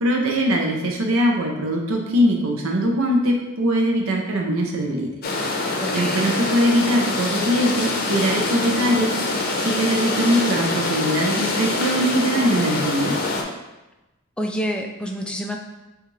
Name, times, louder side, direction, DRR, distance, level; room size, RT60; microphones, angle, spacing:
voice 1, 0.0-5.1 5.9-9.1 9.6-13.2, equal, 75° right, 1 dB, 0.6 m, -21 dB
sound 1, 5.2-13.4, left 2 dB, 45° left, 0.6 m, -24 dB
voice 2, 5.8-6.3 14.4-15.6, equal, 5° left, 2 dB, 0.3 m, -28 dB
6.4 x 2.4 x 3.1 m, 1.0 s
head